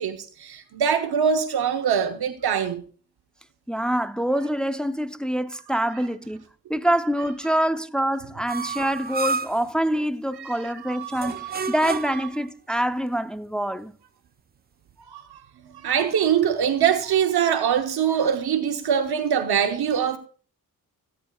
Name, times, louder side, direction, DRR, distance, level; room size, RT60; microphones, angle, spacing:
voice 1, 0.0-2.8 10.4-12.2 15.0-15.4 15.7-20.2, right 8 dB, 75° right, 1.0 m, -24 dB
voice 2, 3.7-6.4 6.7-13.9, equal, ahead, 0.7 m, -25 dB
sound 1, 8.5-9.7 11.1-12.3, right 4 dB, 25° right, 0.4 m, -30 dB
17.0 x 9.8 x 2.4 m
cardioid pair, 55°, 39 cm